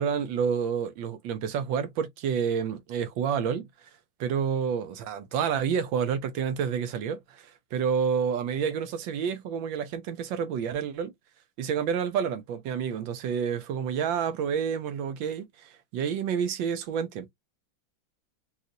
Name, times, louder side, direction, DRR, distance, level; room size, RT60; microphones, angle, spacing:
voice 1, 0.0-3.7 4.2-11.1 11.6-17.3, right 7 dB, 75° right, 1.4 m, -29 dB
4.1 x 2.4 x 2.6 m
omnidirectional pair, 2.2 m